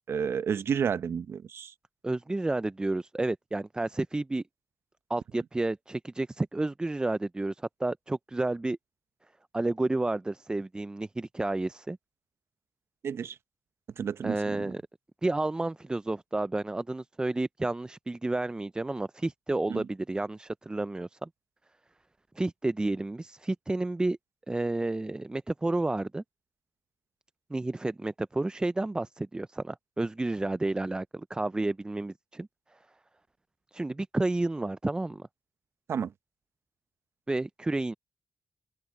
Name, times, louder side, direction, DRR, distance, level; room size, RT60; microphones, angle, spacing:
voice 1, 0.1-1.7 13.0-13.4 14.0-14.6 19.7-19.9 35.9-36.1, right 7 dB, 65° right, 0.8 m, -31 dB
voice 2, 2.0-4.4 5.1-8.8 9.5-12.0 14.2-14.8 15.2-21.3 22.4-24.2 24.5-26.2 27.5-32.5 33.7-35.3 37.3-37.9, right 2 dB, 15° right, 0.5 m, -31 dB
open air
supercardioid pair, 60°, 5 cm